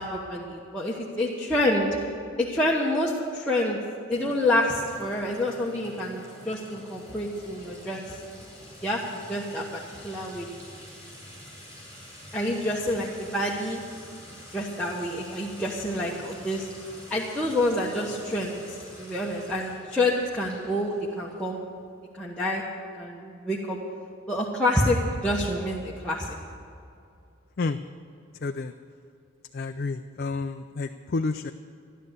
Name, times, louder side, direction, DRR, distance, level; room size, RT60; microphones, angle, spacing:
voice 1, 0.0-1.9 2.4-3.8 4.1-8.0 8.8-9.0 9.3-10.5 12.3-13.8 14.5-16.7 17.1-18.6 19.0-21.6 22.1-22.6 23.0-23.8 24.3-25.0 25.2-26.4, left 1 dB, 5° left, -6 dB, 1.1 m, -27 dB
Sink (filling or washing) / Trickle dribble / Fill (with liquid), 4.1-21.5, equal, 15° right, 5.0 m, -47 dB
voice 2, 28.4-28.7 29.5-31.5, left 3 dB, 45° left, 7 dB, 0.4 m, -30 dB
14.0 x 11.0 x 8.0 m, 2.5 s
head